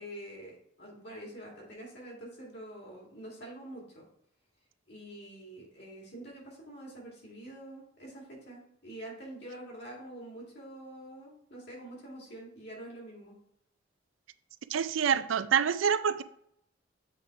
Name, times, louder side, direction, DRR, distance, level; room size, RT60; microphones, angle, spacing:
voice 1, 0.0-4.0 4.9-13.3, right 1 dB, 60° left, -3 dB, 2.5 m, -46 dB
voice 2, 14.7-16.2, right 7 dB, 80° right, 13 dB, 0.4 m, -26 dB
7.7 x 3.7 x 4.5 m, 0.71 s
head